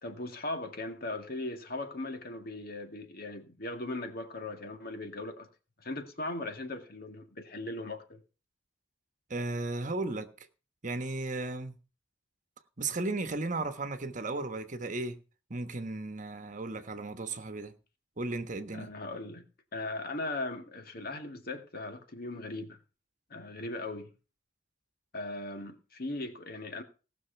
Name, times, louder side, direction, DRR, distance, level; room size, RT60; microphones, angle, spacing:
voice 1, 0.0-5.5 5.8-8.2 18.7-19.5 19.7-22.8 23.3-24.1 25.1-26.8, left 2 dB, 50° left, 2.2 m, -38 dB
voice 2, 9.3-10.3 10.8-11.8 12.8-15.2 15.5-17.7 18.2-18.9, right 2 dB, 40° right, 1.2 m, -35 dB
18.5 x 6.3 x 5.8 m
head